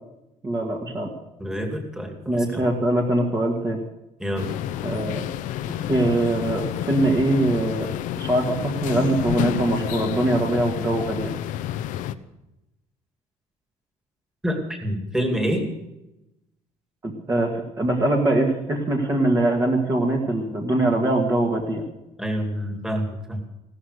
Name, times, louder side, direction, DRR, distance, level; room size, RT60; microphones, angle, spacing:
voice 1, 0.4-1.1 2.3-3.8 4.8-5.2 5.9-7.9 8.2-11.3 17.0-21.8, right 1 dB, 20° right, 0 dB, 1.8 m, -22 dB
voice 2, 1.4-2.7 4.2-4.5 14.4-15.7 22.2-23.4, equal, 5° right, 3 dB, 2.3 m, -27 dB
sound 1, 4.4-12.1, left 11 dB, 70° left, 0.8 m, -29 dB
16.5 x 13.0 x 6.6 m, 0.93 s
cardioid pair, 160°, 14 cm